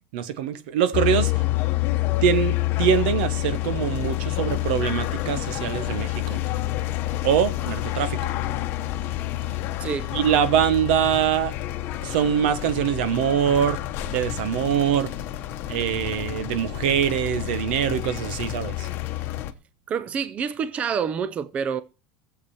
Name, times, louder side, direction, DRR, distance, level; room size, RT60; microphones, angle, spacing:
voice 1, 0.1-1.4 2.2-6.4 7.2-8.2 10.1-11.5 12.0-13.8 14.1-15.1 15.7-18.9, right 9 dB, 85° right, 1.2 m, -23 dB
sound 1, 0.9-19.5, left 15 dB, 45° left, 0.9 m, -28 dB
voice 2, 9.8-10.1 19.9-21.8, right 7 dB, 25° right, 0.5 m, -27 dB
16.0 x 7.7 x 4.3 m
cardioid pair, 160°, 5 cm